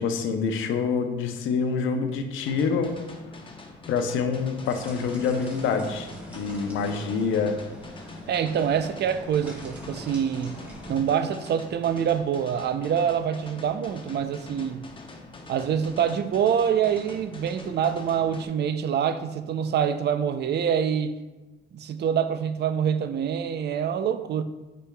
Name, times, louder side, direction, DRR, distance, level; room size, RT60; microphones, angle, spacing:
voice 1, 0.0-2.9 3.9-7.6, left 5 dB, 85° left, 6 dB, 0.7 m, -26 dB
sound 1, 2.5-18.5, left 2 dB, 25° left, 0.8 m, -44 dB
sound 2, 4.6-11.0, equal, 5° right, 2.0 m, -44 dB
voice 2, 8.3-10.6 10.9-14.8 15.5-21.2 21.7-24.4, right 8 dB, 60° right, 11 dB, 0.5 m, -25 dB
8.2 x 5.1 x 2.3 m, 1.1 s
cardioid pair, 90°, 20 cm